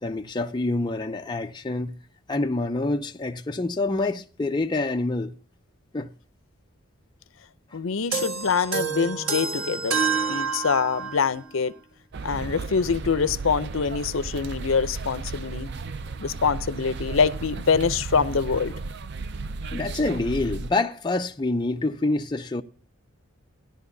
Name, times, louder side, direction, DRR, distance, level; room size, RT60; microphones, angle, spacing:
voice 1, 0.0-2.0 2.3-5.3 5.9-6.1 19.7-22.6, left 2 dB, 20° left, 0.5 m, -26 dB
voice 2, 7.7-10.0 10.3-11.7 12.2-15.7 16.2-18.7, left 5 dB, 70° left, 0.6 m, -25 dB
sound 1, 8.1-11.3, right 5 dB, 85° right, 1.4 m, -28 dB
sound 2, 12.1-20.7, right 4 dB, 50° right, 0.4 m, -34 dB
15.0 x 10.5 x 2.7 m
head